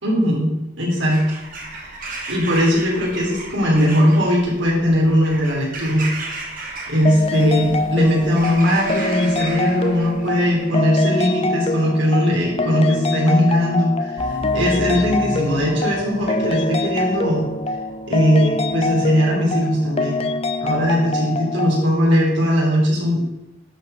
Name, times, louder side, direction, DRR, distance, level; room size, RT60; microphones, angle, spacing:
voice 1, 0.0-1.2 1.7-6.1 6.9-17.5 18.1-20.2 20.6-23.2, equal, 70° right, -3 dB, 3.5 m, -19 dB
Bird vocalization bird call bird song / Crow, 1.0-10.8, right 3 dB, 45° right, 1.9 m, -35 dB
sound 1, 7.1-21.8, left 2 dB, 30° left, 0.4 m, -25 dB
sound 2, 14.2-19.4, left 1 dB, 70° left, 2.5 m, -32 dB
11.5 x 4.9 x 5.6 m, 0.94 s
head